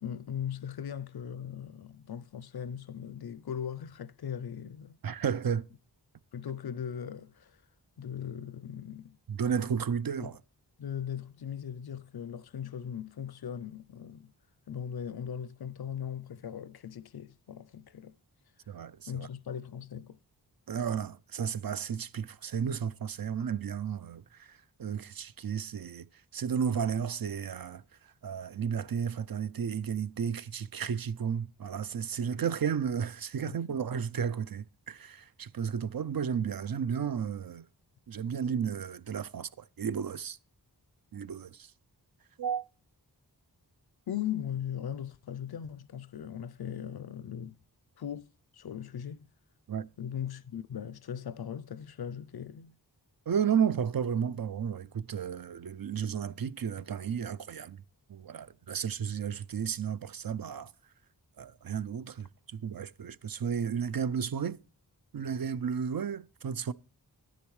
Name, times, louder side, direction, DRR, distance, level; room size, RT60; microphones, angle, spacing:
voice 1, 0.0-5.0 6.3-7.6 8.0-9.2 10.2-10.3 10.8-14.3 14.7-18.2 19.1-20.2 33.5-33.8 44.1-47.6 48.0-48.3 48.5-49.2 50.0-52.8, left 9 dB, 65° left, 0.5 m, -39 dB
voice 2, 5.0-5.7 9.3-10.4 18.7-19.3 20.7-26.1 26.3-27.8 28.2-37.6 38.1-40.4 41.1-41.7 42.4-42.6 49.7-49.9 53.3-57.8 58.1-60.7 61.4-64.6 65.1-66.7, right 7 dB, 60° right, 0.5 m, -33 dB
12.0 x 10.5 x 3.2 m
wide cardioid pair, 60°, 41 cm